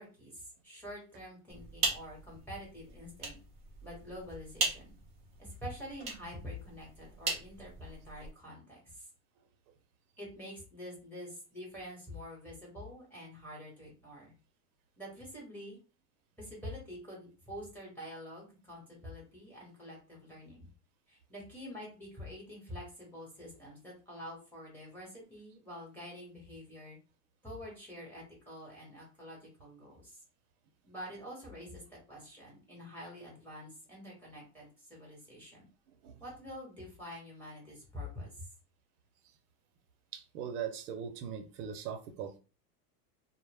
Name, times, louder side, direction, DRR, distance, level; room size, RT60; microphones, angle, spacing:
voice 1, 0.0-3.4 3.8-5.0 5.4-9.0 10.2-14.3 15.0-15.8 16.4-20.7 21.1-27.0 27.4-30.2 30.8-35.7 36.2-38.4, left 1 dB, 5° left, -4 dB, 0.9 m, -47 dB
sound 1, 1.5-8.3, right 3 dB, 15° right, 0.3 m, -39 dB
voice 2, 40.1-42.4, right 8 dB, 70° right, 7 dB, 0.6 m, -40 dB
2.1 x 2.0 x 3.3 m, 0.34 s
supercardioid pair, 150°, 47 cm